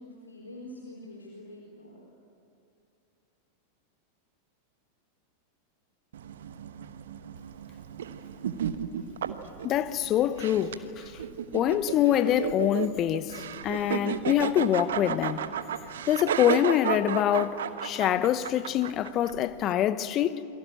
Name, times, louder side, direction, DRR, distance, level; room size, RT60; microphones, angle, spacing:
voice 1, 0.0-2.0, left 1 dB, 80° left, 3.7 m, -45 dB
sound 1, 6.1-19.7, right 8 dB, 60° right, 1.1 m, -34 dB
voice 2, 9.6-11.1 11.5-15.5 16.1-20.4, left 11 dB, 35° left, 1.0 m, -25 dB
28.5 x 23.0 x 8.8 m
figure-of-eight pair, 90°, 0 cm